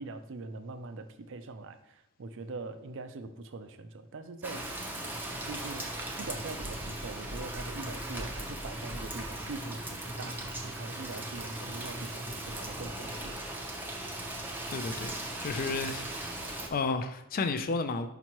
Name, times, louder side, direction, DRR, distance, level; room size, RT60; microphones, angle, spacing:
voice 1, 0.0-4.9 5.4-5.9 6.2-13.4 15.6-15.8, right 3 dB, 55° right, 10 dB, 0.5 m, -43 dB
Rain, 4.4-16.7, right 1 dB, 10° right, 0.6 m, -38 dB
voice 2, 14.7-15.2 15.4-18.1, left 4 dB, 40° left, 9 dB, 0.4 m, -32 dB
5.9 x 5.3 x 3.0 m, 0.82 s
head